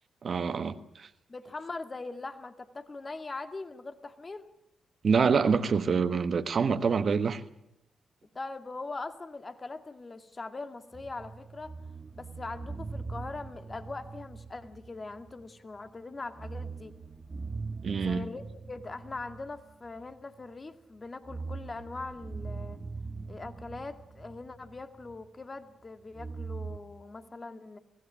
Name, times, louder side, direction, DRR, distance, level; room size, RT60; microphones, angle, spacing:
voice 1, 0.2-1.1 5.0-7.4 17.8-18.2, right 5 dB, 60° right, 1.3 m, -26 dB
voice 2, 1.3-4.4 8.3-11.7 12.1-16.9 18.0-22.8 23.3-27.8, left 3 dB, 40° left, 2.1 m, -41 dB
sound 1, 10.9-15.6 15.9-16.0 16.3-20.6 21.1-25.4 26.1-26.8, right 4 dB, 35° right, 1.7 m, -42 dB
23.0 x 17.0 x 8.6 m
hypercardioid pair, 45°, 0 cm